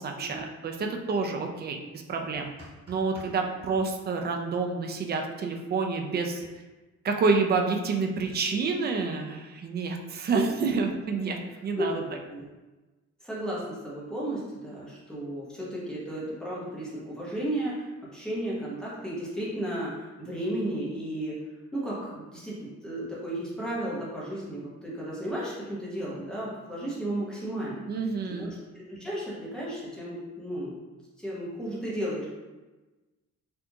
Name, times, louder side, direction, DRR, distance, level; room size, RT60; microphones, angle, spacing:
voice 1, 0.0-2.5 2.9-6.4 7.0-12.0 27.9-28.5, right 4 dB, 35° right, 4 dB, 0.4 m, -28 dB
sound 1, 2.3-3.4 6.4-6.5, right 1 dB, 20° right, 1.5 m, -49 dB
voice 2, 11.7-12.4 13.2-21.4 21.7-27.9 28.3-30.7 31.2-32.3, right 1 dB, 5° left, -7 dB, 0.9 m, -34 dB
4.4 x 2.6 x 2.8 m, 1.2 s
wide cardioid pair, 180°, 29 cm